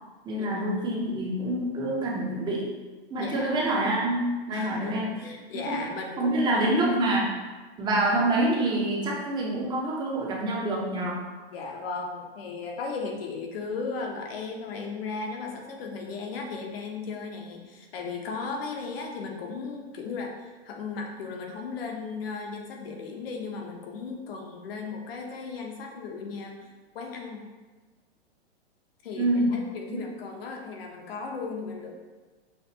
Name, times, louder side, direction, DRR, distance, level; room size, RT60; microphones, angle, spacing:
voice 1, 0.2-2.7 3.1-5.1 5.7-5.8 6.2-7.4 7.8-11.2 29.2-29.6 29.9-30.0, right 1 dB, 15° right, -2 dB, 0.6 m, -26 dB
voice 2, 3.2-3.6 4.5-6.8 11.5-27.4 29.0-31.9, left 4 dB, 60° left, 2 dB, 0.9 m, -36 dB
5.7 x 2.4 x 2.8 m, 1.3 s
hypercardioid pair, 140°, 33 cm